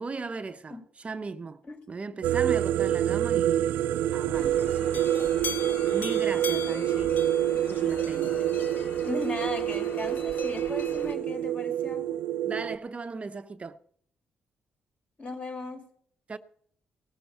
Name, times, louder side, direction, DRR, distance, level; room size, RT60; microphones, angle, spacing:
voice 1, 0.0-1.6 1.9-5.1 5.9-7.2 7.6-8.4 12.4-13.8 16.3-16.4, right 4 dB, 35° right, 0.7 m, -37 dB
sound 1, 2.2-12.8, right 11 dB, 90° right, 0.4 m, -27 dB
sound 2, 4.3-11.1, left 4 dB, 65° left, 2.1 m, -40 dB
voice 2, 9.0-12.0 15.2-15.8, left 2 dB, 40° left, 5.3 m, -36 dB
18.5 x 6.9 x 5.6 m
cardioid pair, 65°, 4 cm